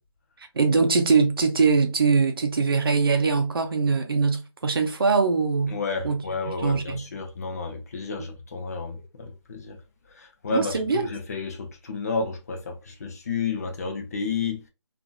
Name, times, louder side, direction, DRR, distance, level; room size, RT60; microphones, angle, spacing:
voice 1, 0.6-5.8 6.0-6.2 6.6-7.0 10.5-11.1, right 4 dB, 50° right, 0.7 m, -22 dB
voice 2, 5.7-9.8 10.1-14.6, left 4 dB, 35° left, 0.6 m, -31 dB
2.7 x 2.6 x 2.2 m
figure-of-eight pair, 155°, 15 cm